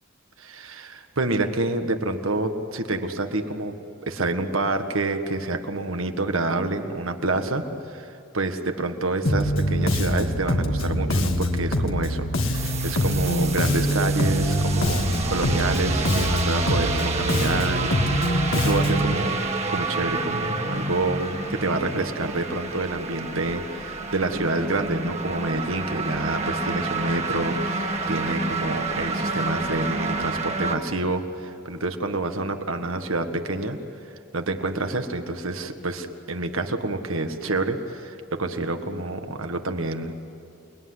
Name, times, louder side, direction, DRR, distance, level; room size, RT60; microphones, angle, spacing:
voice 1, 0.4-3.7 4.0-33.8 34.3-40.1, right 2 dB, 85° right, 6 dB, 1.8 m, -28 dB
Bass guitar, 9.2-19.1, equal, 75° left, 1.9 m, -24 dB
sound 1, 12.5-30.8, right 3 dB, 35° right, 1.8 m, -29 dB
29.0 x 20.5 x 9.8 m, 2.6 s
head